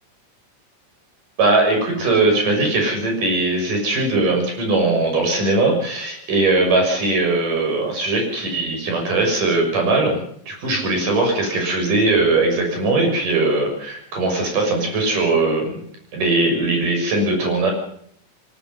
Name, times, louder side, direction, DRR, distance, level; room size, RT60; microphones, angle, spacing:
voice 1, 1.4-15.8 16.1-17.7, right 2 dB, 75° right, 2 dB, 8.0 m, -20 dB
23.0 x 20.5 x 5.6 m, 0.64 s
omnidirectional pair, 3.8 m